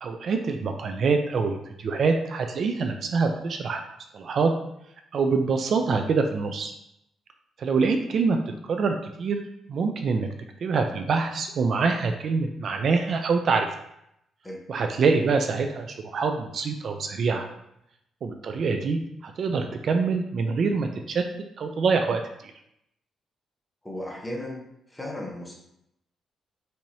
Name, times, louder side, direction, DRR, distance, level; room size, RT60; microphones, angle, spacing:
voice 1, 0.0-3.8 4.1-4.5 5.1-6.7 7.6-8.4 8.7-9.4 9.7-10.3 10.6-13.7 14.7-17.5 18.2-21.2 21.6-22.2, right 4 dB, 50° right, 5 dB, 0.3 m, -25 dB
voice 2, 23.8-24.6 24.9-25.6, left 1 dB, 10° left, -2 dB, 0.8 m, -35 dB
4.5 x 2.8 x 2.7 m, 0.79 s
cardioid pair, 145°, 0 cm